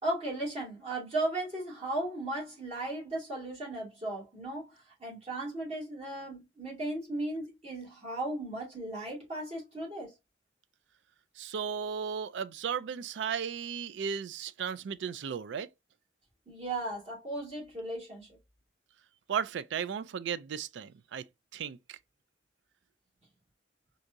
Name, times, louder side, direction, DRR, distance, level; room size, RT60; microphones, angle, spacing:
voice 1, 0.0-10.1 16.5-18.3, right 1 dB, 35° right, 2.2 m, -36 dB
voice 2, 11.4-15.7 19.3-21.2 21.5-22.0, right 7 dB, 80° right, 0.3 m, -35 dB
4.5 x 2.7 x 2.5 m
head